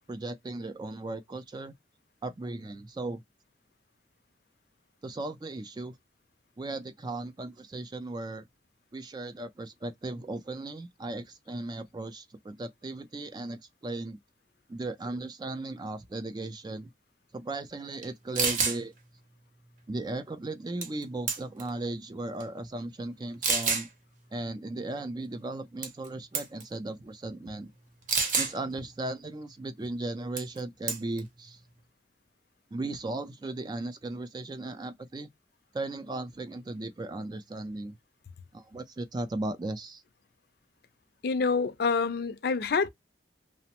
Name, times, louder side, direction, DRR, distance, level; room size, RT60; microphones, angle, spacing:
voice 1, 0.1-1.7 2.2-3.2 5.0-6.0 6.6-8.5 8.9-14.2 14.7-16.9 17.3-18.9 19.9-23.9 24.3-27.7 28.4-31.6 32.7-35.3 35.7-38.0 38.5-40.0, right 2 dB, 25° right, 0.3 m, -36 dB
sound 1, 18.0-18.1 18.3-18.8 20.8-21.0 21.3-21.7 22.4-22.5 23.4-23.9 25.8-26.1 26.3-26.6 28.1-28.5 30.4-30.6 30.9-31.2, right 5 dB, 45° right, 0.7 m, -27 dB
voice 2, 41.2-42.9, left 4 dB, 60° left, 0.4 m, -27 dB
2.9 x 2.0 x 2.8 m
head